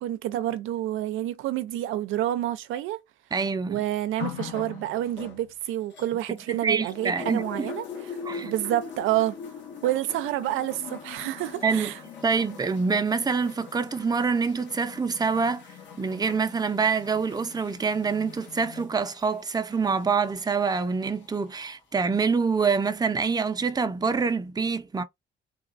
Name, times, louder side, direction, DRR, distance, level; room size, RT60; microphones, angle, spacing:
voice 1, 0.0-3.0 3.7-9.4 9.8-12.0, right 13 dB, 90° right, 0.5 m, -28 dB
voice 2, 3.3-3.8 6.3-7.7 8.2-8.5 11.6-11.9 12.2-15.6 16.0-25.0, right 5 dB, 20° right, 0.6 m, -26 dB
sound 1, 4.2-6.6 6.9-21.6 22.5-22.6, left 6 dB, 65° left, 1.6 m, -42 dB
3.8 x 2.3 x 2.5 m
cardioid pair, 90°, 20 cm